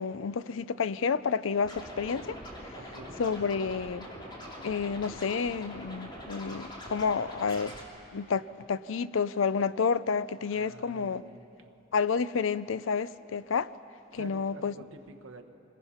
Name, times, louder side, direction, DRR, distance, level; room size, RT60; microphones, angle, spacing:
voice 1, 0.0-2.4 2.6-2.7 3.2-4.1 4.6-7.7 8.1-11.2 11.9-13.7 14.1-14.7, left 5 dB, 75° left, 16 dB, 0.5 m, -30 dB
Scratching (performance technique), 1.6-7.8, equal, 25° left, 2.8 m, -44 dB
voice 2, 2.8-3.6 10.5-11.7 14.1-15.4, right 2 dB, 75° right, 5 dB, 1.2 m, -49 dB
26.5 x 20.0 x 5.7 m, 2.9 s
head